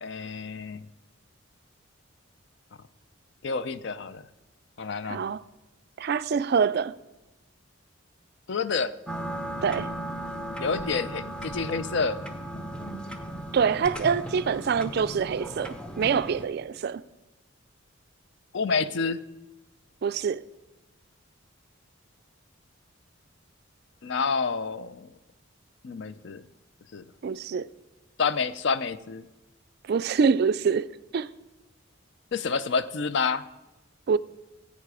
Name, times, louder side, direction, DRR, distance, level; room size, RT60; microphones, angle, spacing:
voice 1, 0.0-0.9 3.4-4.3 4.8-5.2 8.5-8.9 10.6-12.2 18.5-19.2 24.0-25.1 25.8-26.4 26.9-27.1 28.2-29.3 32.3-33.4, left 5 dB, 55° left, 0.5 m, -28 dB
voice 2, 5.1-5.4 6.0-7.0 9.6-9.9 13.5-17.0 20.0-20.4 27.2-27.7 29.9-31.3 34.1-34.2, right 6 dB, 50° right, 0.3 m, -25 dB
Grandfather Clock, 9.1-16.4, right 1 dB, 5° left, 0.7 m, -36 dB
16.0 x 8.4 x 4.8 m
head